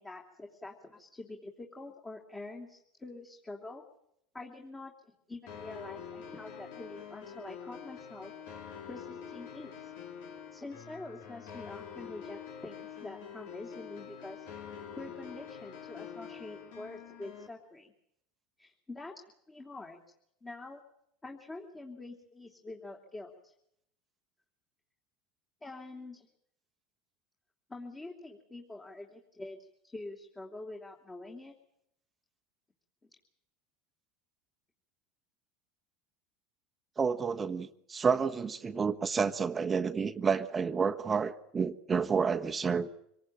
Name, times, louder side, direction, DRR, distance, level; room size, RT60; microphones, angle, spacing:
voice 1, 0.0-3.8 4.3-8.3 8.9-9.9 10.5-14.5 15.0-17.9 18.6-19.1 19.5-20.0 20.4-20.8 21.2-23.5 25.6-26.3 27.7-31.5 33.0-33.1, left 2 dB, 15° left, 1 dB, 3.2 m, -46 dB
sound 1, 5.5-17.5, left 7 dB, 75° left, 4.2 m, -46 dB
voice 2, 37.0-42.9, right 5 dB, 20° right, 7 dB, 1.3 m, -30 dB
26.0 x 18.5 x 9.1 m, 0.76 s
supercardioid pair, 110°, 0 cm